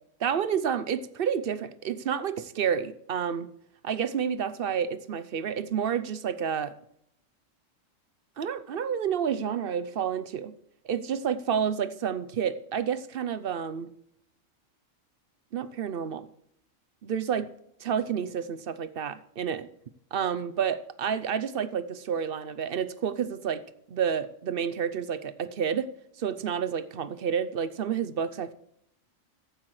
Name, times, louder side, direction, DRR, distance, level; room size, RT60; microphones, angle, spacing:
voice 1, 0.2-3.5 3.8-6.7 8.4-10.5 10.8-13.9 15.5-16.3 17.0-17.5 17.8-19.7 20.1-23.6 23.9-25.9 26.2-28.5, right 7 dB, 55° right, 14 dB, 0.8 m, -29 dB
14.5 x 8.6 x 3.2 m, 0.73 s
omnidirectional pair, 1.3 m